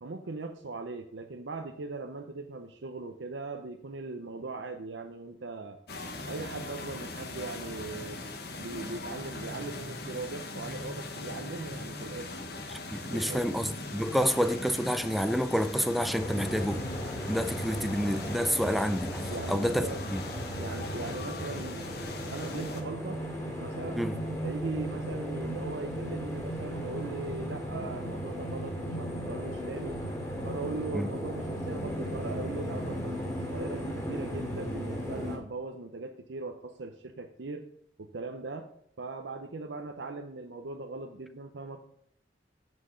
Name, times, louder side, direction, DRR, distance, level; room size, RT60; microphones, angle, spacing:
voice 1, 0.0-5.8 6.2-8.3 8.6-12.3 13.1-13.5 19.3-20.0 20.6-21.9 22.3-23.2 23.6-24.0 24.4-30.0 30.4-33.2 33.5-37.7 38.0-38.7 39.0-41.8, right 3 dB, 85° right, 0.7 m, -39 dB
sound 1, 5.9-22.8, left 2 dB, 60° left, 1.1 m, -40 dB
voice 2, 12.7-16.8 17.3-20.3 24.0-24.2 30.9-31.1, equal, ahead, 0.4 m, -29 dB
sound 2, 16.2-35.4, equal, 15° left, 2.4 m, -36 dB
7.6 x 6.2 x 5.0 m
head